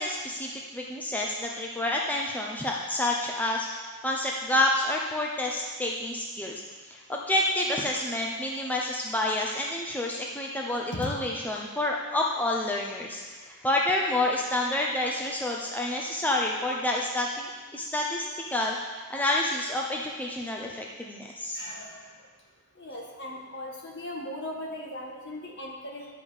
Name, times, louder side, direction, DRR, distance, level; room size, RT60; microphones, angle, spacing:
voice 1, 0.0-21.6, left 1 dB, 10° left, -2 dB, 0.6 m, -29 dB
voice 2, 21.6-22.1 22.8-26.1, left 1 dB, 50° left, -1 dB, 1.7 m, -38 dB
10.5 x 5.0 x 7.2 m, 1.4 s
head